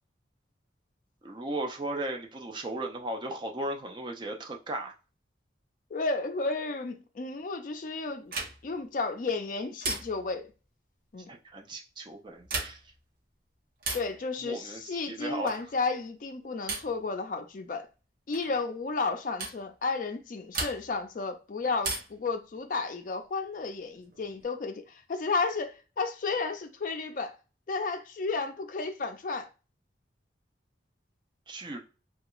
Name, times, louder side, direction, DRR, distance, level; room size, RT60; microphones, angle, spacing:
voice 1, 1.2-4.9 11.3-12.8 14.4-15.5 31.5-31.8, right 1 dB, 25° right, 0.4 m, -36 dB
voice 2, 5.9-8.3 8.6-10.5 11.1-11.3 13.9-17.9 18.3-27.3 27.7-29.5, left 4 dB, 45° left, 0.4 m, -32 dB
sound 1, 8.3-8.8 9.8-10.4 12.4-13.0 13.8-14.2 15.4-15.8 16.7-17.0 18.3-18.5 19.4-19.6 20.5-21.1 21.8-22.3 23.8-24.4, right 3 dB, 50° right, 0.8 m, -36 dB
3.3 x 2.3 x 3.0 m
head